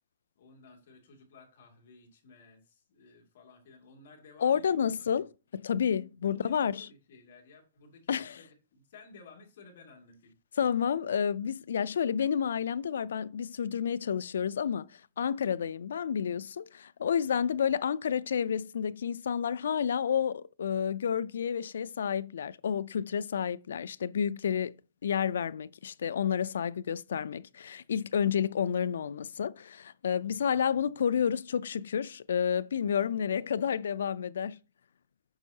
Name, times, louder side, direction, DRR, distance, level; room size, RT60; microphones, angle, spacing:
voice 1, 0.4-5.2 6.2-10.4 17.3-17.4, left 3 dB, 60° left, 2.2 m, -55 dB
voice 2, 4.4-6.9 8.1-8.4 10.6-14.9 15.2-24.7 25.0-34.6, left 8 dB, 90° left, 0.3 m, -30 dB
7.9 x 5.3 x 2.7 m
hypercardioid pair, 165°, 0 cm